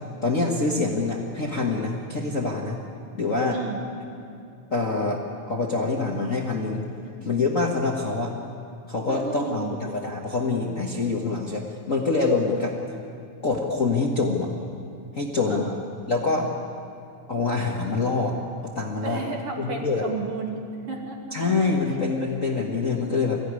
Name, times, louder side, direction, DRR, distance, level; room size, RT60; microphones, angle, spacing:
voice 1, 0.2-2.8 3.1-3.6 4.7-6.8 7.2-8.3 8.9-12.7 13.4-14.5 15.1-15.7 16.1-16.5 17.3-18.4 18.7-19.2 19.6-20.1 21.3-23.4, left 3 dB, 60° left, 0 dB, 0.8 m, -25 dB
voice 2, 3.5-3.9 7.0-7.1 9.0-9.8 15.5-15.8 19.0-21.4 21.9-22.0, right 4 dB, 45° right, 0 dB, 3.1 m, -33 dB
23.0 x 15.5 x 9.7 m, 2.6 s
omnidirectional pair, 3.9 m